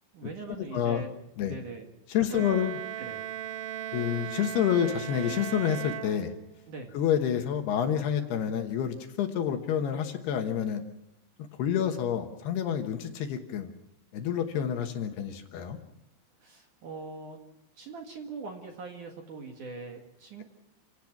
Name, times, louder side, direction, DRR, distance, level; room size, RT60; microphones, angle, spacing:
voice 1, 0.1-1.1 1.4-1.9 2.3-2.4 3.0-3.2 6.7-6.9 16.4-17.4 17.8-20.4, right 4 dB, 55° right, 3 dB, 2.6 m, -41 dB
voice 2, 0.7-1.0 1.4-1.6 2.1-2.8 3.9-6.3 6.9-10.8 11.6-13.7 14.1-15.8, left 9 dB, 70° left, 5 dB, 3.0 m, -28 dB
Bowed string instrument, 2.3-6.7, right 11 dB, 80° right, 2.1 m, -38 dB
29.0 x 17.5 x 5.9 m, 0.80 s
omnidirectional pair, 5.4 m